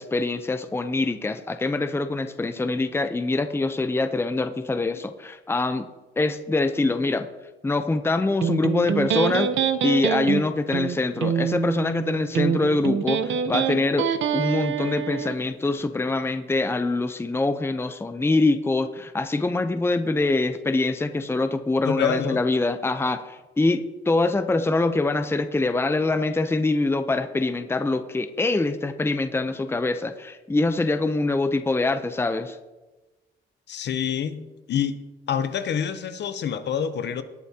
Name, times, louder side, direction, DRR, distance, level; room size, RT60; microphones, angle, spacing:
voice 1, 0.0-5.9 6.2-7.3 7.6-9.5 9.8-32.6, left 2 dB, 10° left, 9 dB, 0.7 m, -24 dB
Electric guitar, 8.4-15.4, right 8 dB, 70° right, 0.8 m, -25 dB
voice 2, 21.9-22.4 33.7-35.0 35.3-37.2, left 8 dB, 60° left, 11 dB, 0.8 m, -27 dB
19.0 x 8.1 x 2.9 m, 1.1 s
cardioid pair, 90°, 20 cm